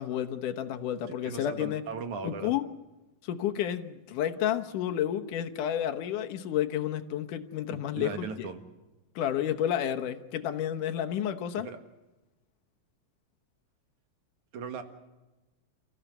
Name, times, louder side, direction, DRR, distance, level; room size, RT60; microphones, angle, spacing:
voice 1, 0.0-1.8 2.2-2.6 3.2-8.5 9.2-11.7, left 10 dB, 75° left, 7 dB, 2.7 m, -31 dB
voice 2, 1.1-2.5 7.7-8.6 11.6-11.8 14.5-14.8, right 5 dB, 65° right, 7 dB, 3.1 m, -38 dB
30.0 x 15.0 x 7.9 m, 1.1 s
omnidirectional pair, 3.7 m